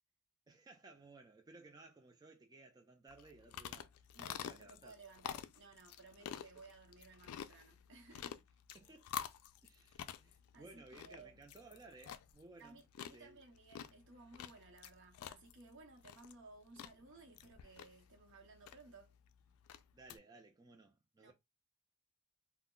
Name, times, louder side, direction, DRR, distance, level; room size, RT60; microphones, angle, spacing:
voice 1, 0.5-5.0 6.5-6.6 8.7-9.1 9.6-12.8 13.1-13.4 19.9-21.3, right 3 dB, 20° right, 0.3 m, -59 dB
sound 1, 3.1-20.2, left 9 dB, 80° left, 0.3 m, -50 dB
voice 2, 4.1-8.4 10.5-11.4 12.6-19.1 21.2-21.3, right 3 dB, 60° right, 0.8 m, -59 dB
2.2 x 2.0 x 3.6 m
head